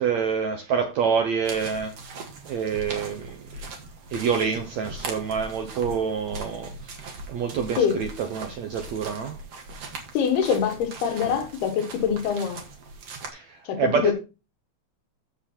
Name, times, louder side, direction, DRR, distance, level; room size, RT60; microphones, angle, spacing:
voice 1, 0.0-2.1 2.4-3.7 4.1-7.0 7.3-9.4 13.3-14.1, right 6 dB, 70° right, 1.7 m, -27 dB
sound 1, 1.4-13.3, right 3 dB, 50° right, 2.5 m, -40 dB
voice 2, 10.2-12.6 13.7-14.1, left 7 dB, 85° left, 3.5 m, -24 dB
14.0 x 4.8 x 4.4 m
omnidirectional pair, 4.4 m